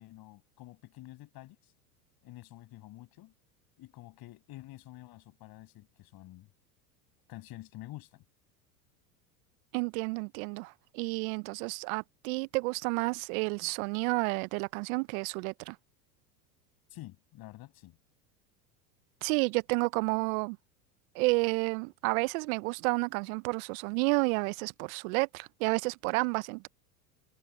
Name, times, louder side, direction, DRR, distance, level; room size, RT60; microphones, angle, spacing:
voice 1, 0.0-1.7 2.2-3.3 3.8-6.5 7.3-8.2 16.9-18.0, left 16 dB, 50° left, 7.5 m, -49 dB
voice 2, 9.7-15.8 19.2-20.6 21.1-26.7, right 28 dB, 60° right, 0.8 m, -31 dB
hypercardioid pair, 95°, 48 cm